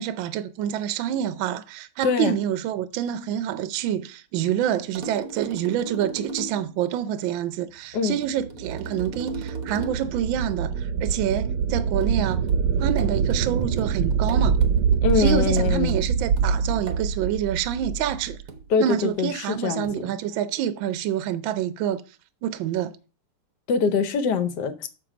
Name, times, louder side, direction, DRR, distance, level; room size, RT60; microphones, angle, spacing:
voice 1, 0.0-12.4 12.8-14.6 15.2-18.4 18.8-22.0 22.4-22.9, right 10 dB, 75° right, 1.3 m, -27 dB
voice 2, 2.0-2.4 7.9-8.2 15.0-15.9 18.7-20.1 23.7-24.7, left 6 dB, 60° left, 1.3 m, -23 dB
sound 1, 4.9-6.7 8.2-10.2 12.0-17.1 18.5-18.8 19.8-20.2, right 2 dB, 55° right, 1.0 m, -39 dB
sound 2, 8.3-18.5, right 6 dB, 90° right, 1.6 m, -25 dB
6.9 x 5.9 x 5.0 m
omnidirectional pair, 2.4 m